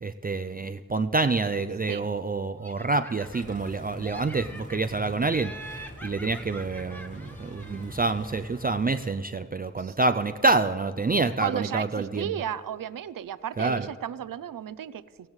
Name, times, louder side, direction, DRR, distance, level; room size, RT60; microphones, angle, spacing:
voice 1, 0.0-12.3 13.6-13.9, right 3 dB, 25° right, 9 dB, 0.4 m, -27 dB
Laughter, 2.6-3.7 4.0-5.0 5.3-8.1, right 1 dB, 5° left, 0.9 m, -45 dB
sound 1, 3.2-9.3, equal, 20° left, 2.3 m, -44 dB
voice 2, 11.4-15.3, right 10 dB, 75° right, 16 dB, 0.5 m, -34 dB
17.5 x 16.0 x 3.2 m, 2.1 s
wide cardioid pair, 80°, 34 cm